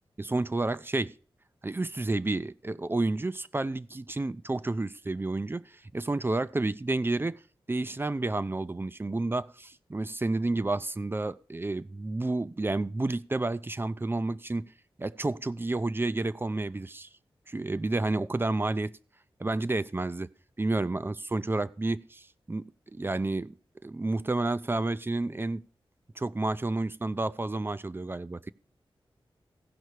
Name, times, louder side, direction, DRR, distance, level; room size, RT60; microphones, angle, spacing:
voice 1, 0.2-1.1 1.6-7.4 7.7-14.6 15.0-17.1 17.5-19.0 19.4-20.3 20.6-23.6 23.8-25.6 26.2-28.5, right 2 dB, 25° right, 0.4 m, -30 dB
15.5 x 5.5 x 4.7 m
wide cardioid pair, 65°, 9 cm